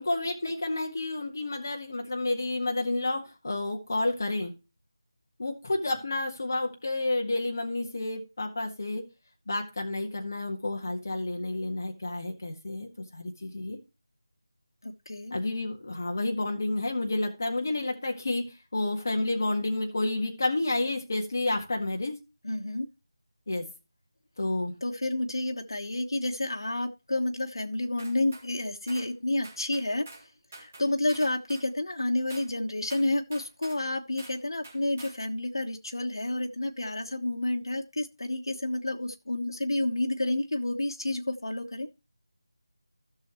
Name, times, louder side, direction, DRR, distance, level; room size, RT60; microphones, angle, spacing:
voice 1, 0.0-4.5 5.4-9.0 9.5-13.8 15.3-22.2 23.5-23.6 24.4-24.7, left 2 dB, 40° left, 1 dB, 1.7 m, -30 dB
voice 2, 14.8-15.4 22.4-22.9 24.8-30.1 30.6-41.9, left 1 dB, 85° left, 3 dB, 1.3 m, -30 dB
sound 1, 28.0-28.5 28.9-29.1 29.4-30.3 30.5-31.7 32.3-32.5 32.9-33.8 34.2-34.4 34.6-35.2, right 2 dB, 25° right, 2.3 m, -47 dB
15.5 x 6.6 x 3.1 m, 0.27 s
figure-of-eight pair, 180°, 2 cm